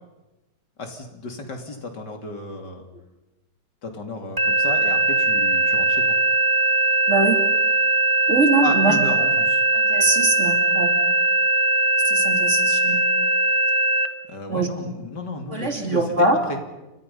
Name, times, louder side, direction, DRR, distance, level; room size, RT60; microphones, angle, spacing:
voice 1, 0.8-2.9 3.8-6.2 8.6-9.6 14.3-16.6, left 2 dB, 70° left, 4 dB, 3.6 m, -33 dB
sound 1, 4.4-14.1, right 3 dB, 15° right, 1.1 m, -20 dB
voice 2, 7.1-7.4 8.3-9.0 9.7-10.9 12.0-13.0 14.5-14.7 15.5-16.4, right 2 dB, 40° right, 4 dB, 3.1 m, -22 dB
29.5 x 25.0 x 5.6 m, 1.0 s
omnidirectional pair, 1.9 m